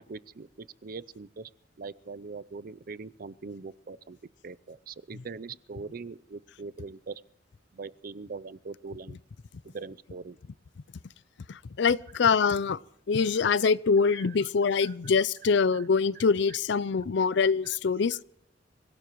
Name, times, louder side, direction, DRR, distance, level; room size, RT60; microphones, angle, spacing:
voice 1, 0.0-1.5 1.8-4.2 4.4-7.2 7.7-9.2 9.7-10.4 13.4-13.5 14.0-14.3 14.8-14.9, right 4 dB, 50° right, 0.5 m, -42 dB
voice 2, 11.5-12.8 13.1-18.2, left 5 dB, 65° left, 0.5 m, -24 dB
25.0 x 16.5 x 3.1 m
head